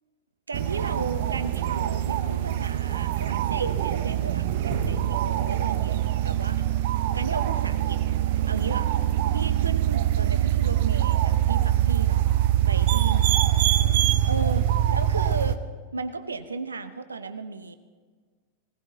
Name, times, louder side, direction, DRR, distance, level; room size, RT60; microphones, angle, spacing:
sound 1, 0.5-15.6, right 12 dB, 50° right, 0.8 m, -24 dB
voice 1, 0.5-6.7 7.1-8.2 8.5-8.9 9.3-12.3 12.7-13.8 14.2-15.6 15.9-17.7, right 4 dB, 75° right, 10 dB, 1.0 m, -35 dB
sound 2, 4.7-7.4, right 1 dB, 25° right, 6.1 m, -39 dB
18.5 x 18.0 x 4.1 m, 1.5 s
figure-of-eight pair, 90°, 0 cm